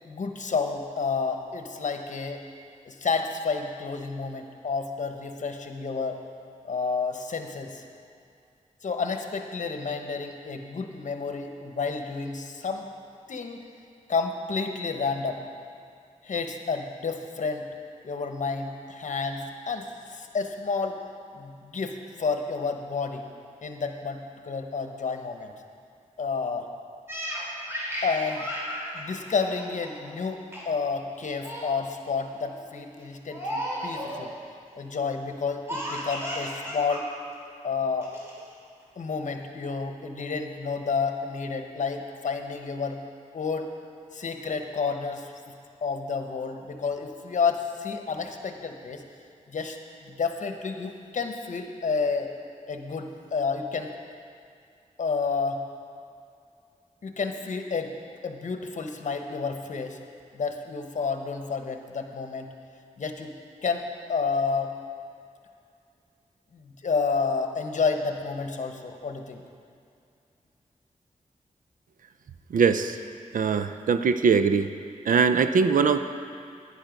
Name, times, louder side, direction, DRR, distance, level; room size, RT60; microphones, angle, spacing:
voice 1, 0.0-2.4 2.9-6.2 6.6-7.8 8.8-12.9 13.3-13.6 14.1-15.4 16.2-17.7 18.0-21.0 21.3-23.3 23.6-25.5 26.2-26.7 28.0-28.4 28.9-30.4 30.6-34.3 34.7-37.1 37.6-38.1 39.0-43.0 43.3-43.7 44.1-45.3 45.8-49.0 49.5-49.8 50.0-52.3 52.7-53.9 55.0-55.6 57.0-57.9 58.2-60.0 60.3-62.5 63.0-63.4 63.6-64.7 66.6-69.4, left 5 dB, 65° left, 5 dB, 1.0 m, -30 dB
Laughter, 27.1-30.1 30.5-30.8 31.1-31.8 32.2-32.6 33.3-34.3 35.7-37.0 37.3-37.4 38.0-38.5, equal, 20° right, 3.0 m, -34 dB
voice 2, 72.5-73.0 73.3-74.7 75.1-76.0, right 5 dB, 90° right, 10 dB, 0.5 m, -21 dB
10.5 x 9.8 x 5.2 m, 2.4 s
wide cardioid pair, 75°, 14 cm